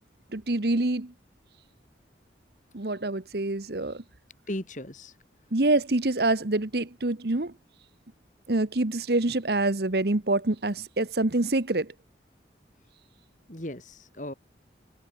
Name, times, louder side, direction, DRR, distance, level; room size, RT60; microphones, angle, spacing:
voice 1, 0.3-1.1 2.7-4.0 5.5-7.5 8.5-11.9, right 2 dB, 60° right, 1.2 m, -26 dB
voice 2, 4.5-5.1 13.5-14.3, left 1 dB, 45° left, 3.2 m, -36 dB
head